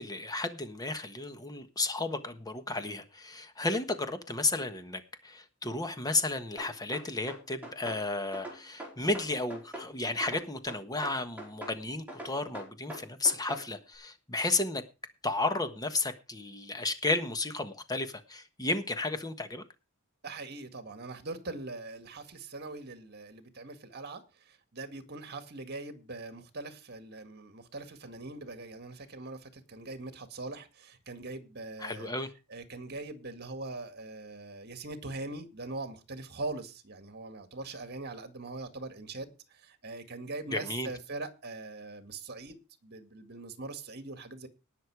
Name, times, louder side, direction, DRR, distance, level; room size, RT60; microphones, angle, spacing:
voice 1, 0.0-14.8 15.2-19.6 31.8-32.3 40.5-40.9, left 2 dB, 15° left, 1.3 m, -33 dB
sound 1, 6.6-8.0 8.3-9.9 10.2-11.8 12.1-13.7, right 1 dB, 5° right, 4.8 m, -42 dB
voice 2, 20.2-32.1 32.5-44.5, right 2 dB, 45° right, 2.0 m, -42 dB
19.0 x 6.6 x 4.8 m
head